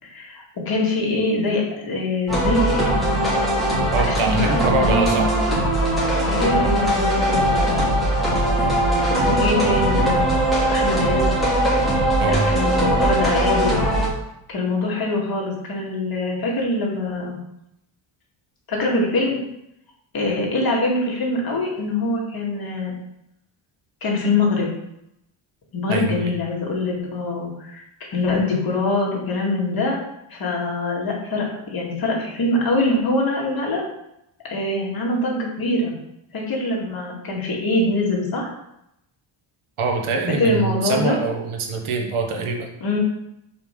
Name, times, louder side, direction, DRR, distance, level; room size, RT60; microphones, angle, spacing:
voice 1, 0.0-2.9 4.1-5.5 6.3-7.9 8.6-8.8 9.1-10.2 10.7-11.3 12.2-13.8 14.5-17.3 18.7-19.4 20.1-22.9 24.0-24.7 25.7-27.8 28.1-30.0 30.3-33.8 34.5-35.9 36.3-38.5 40.4-41.2 42.8-43.0, left 2 dB, 45° left, -3 dB, 2.2 m, -23 dB
sound 1, 2.3-14.1, right 1 dB, ahead, 2.5 m, -20 dB
voice 2, 3.9-5.3 12.2-12.5 25.9-26.3 39.8-42.7, right 4 dB, 90° right, 3 dB, 1.4 m, -24 dB
5.6 x 4.6 x 5.3 m, 0.81 s
wide cardioid pair, 150°, 48 cm